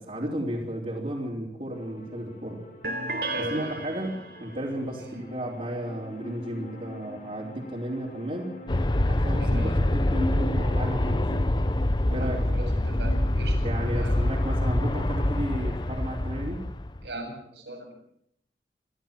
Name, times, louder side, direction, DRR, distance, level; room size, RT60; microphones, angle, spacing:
voice 1, 0.0-2.6 3.4-8.5 9.1-11.5 12.1-12.4 13.6-16.6, equal, 40° right, -6 dB, 3.7 m, -33 dB
sound 1, 1.7-15.9, left 1 dB, 45° left, 3.7 m, -44 dB
sound 2, 2.8-4.6, right 2 dB, 65° right, 3.6 m, -33 dB
voice 2, 3.3-3.7 5.0-5.2 9.4-9.7 12.1-13.6 13.9-14.1 17.0-17.9, right 1 dB, 85° right, 1 dB, 7.7 m, -39 dB
Aircraft, 8.7-17.1, left 1 dB, 25° left, 0.8 m, -25 dB
25.5 x 14.5 x 7.5 m, 0.69 s
head